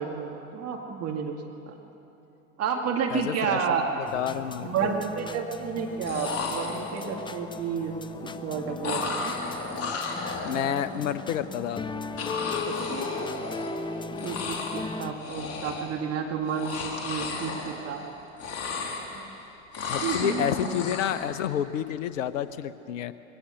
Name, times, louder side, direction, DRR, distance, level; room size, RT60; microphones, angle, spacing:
voice 1, 0.0-1.4 1.7-1.8 2.6-4.0 4.6-7.9 8.4-9.3 12.6-13.1 14.1-18.0 20.0-20.7, right 6 dB, 35° right, 2 dB, 2.2 m, -31 dB
voice 2, 3.1-3.6 4.1-4.9 10.4-11.9 19.9-23.1, left 10 dB, 70° left, 13 dB, 1.0 m, -29 dB
sound 1, 3.8-3.9 4.2-4.8 5.8-5.9 6.1-7.3 8.8-11.0 12.2-13.9 14.1-14.9 15.2-16.0 16.4-18.1 18.3-19.4 19.7-21.3, left 4 dB, 35° left, 3.5 m, -34 dB
sound 2, 4.1-15.1, left 4 dB, 10° left, 0.7 m, -37 dB
21.5 x 17.0 x 7.9 m, 2.9 s
hypercardioid pair, 85°, 40 cm